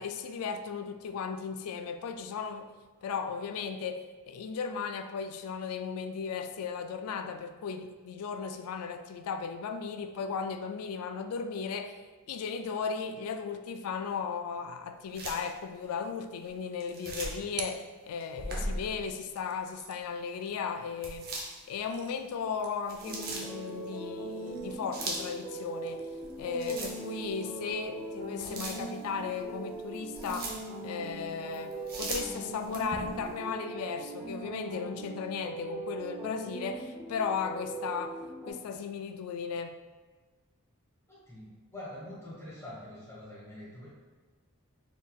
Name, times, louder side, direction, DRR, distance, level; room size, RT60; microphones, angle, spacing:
voice 1, 0.0-2.7 3.0-12.0 12.3-21.3 21.7-26.0 26.4-30.5 30.8-38.2 38.5-39.8, left 6 dB, 85° left, 8 dB, 0.3 m, -36 dB
sound 1, 15.1-15.5 16.8-17.5 18.2-19.2 21.0-22.0 22.6-23.5 24.5-25.4 26.1-27.3 27.7-27.8 28.4-29.1 29.7-30.7 31.5-33.3, right 2 dB, 45° right, 0.7 m, -38 dB
sound 2, 16.8-18.6 19.3-26.9, right 7 dB, 90° right, 0.4 m, -50 dB
sound 3, 23.0-38.5, right 2 dB, 10° right, 0.8 m, -40 dB
voice 2, 41.1-43.9, left 1 dB, 15° left, -8 dB, 1.3 m, -45 dB
4.1 x 3.4 x 2.4 m, 1.3 s
head